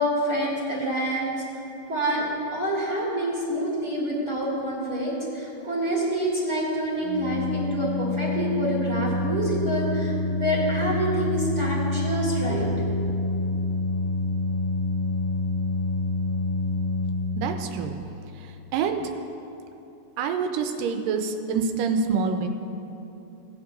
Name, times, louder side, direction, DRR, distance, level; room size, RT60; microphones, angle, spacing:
voice 1, 0.0-1.3 1.9-2.2 2.5-12.9, right 1 dB, 30° right, -6 dB, 1.4 m, -27 dB
Organ, 7.0-17.8, left 2 dB, 80° left, 3.1 m, -27 dB
voice 2, 17.4-18.0 18.4-19.1 20.2-22.5, right 5 dB, 90° right, 6 dB, 2.3 m, -26 dB
18.5 x 8.8 x 2.6 m, 2.9 s
omnidirectional pair, 3.9 m